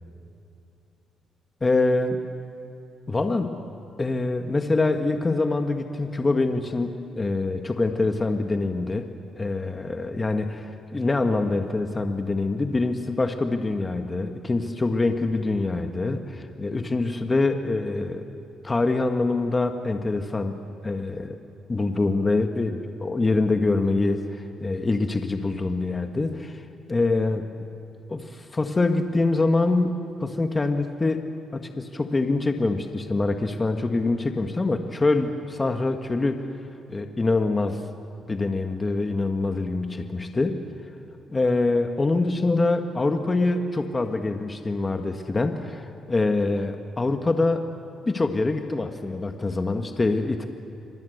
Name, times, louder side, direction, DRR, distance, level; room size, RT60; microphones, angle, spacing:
voice 1, 1.6-2.2 3.1-3.6 4.0-9.1 9.4-18.2 18.6-20.6 20.8-21.4 21.7-27.5 28.1-31.2 31.5-36.4 36.9-37.8 38.3-40.6 41.3-47.7 48.0-50.5, left 3 dB, 25° left, 5 dB, 1.5 m, -25 dB
26.5 x 26.0 x 8.1 m, 2.7 s
cardioid pair, 90°, 0 cm